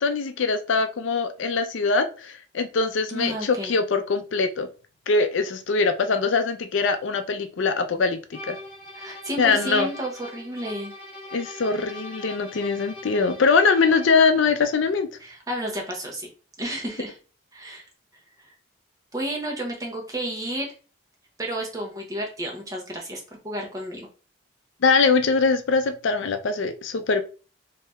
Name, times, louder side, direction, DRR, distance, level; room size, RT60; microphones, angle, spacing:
voice 1, 0.0-4.7 5.1-8.6 9.4-9.9 11.3-15.1 24.8-27.2, left 4 dB, 70° left, 9 dB, 0.4 m, -22 dB
voice 2, 3.1-3.7 8.9-10.9 15.2-16.3 16.6-17.2 17.5-17.8 19.1-20.7 21.4-24.1, right 1 dB, 15° right, -1 dB, 0.9 m, -31 dB
sound 1, 8.3-14.3, left 1 dB, 50° left, 1.5 m, -42 dB
3.2 x 2.8 x 3.4 m, 0.35 s
head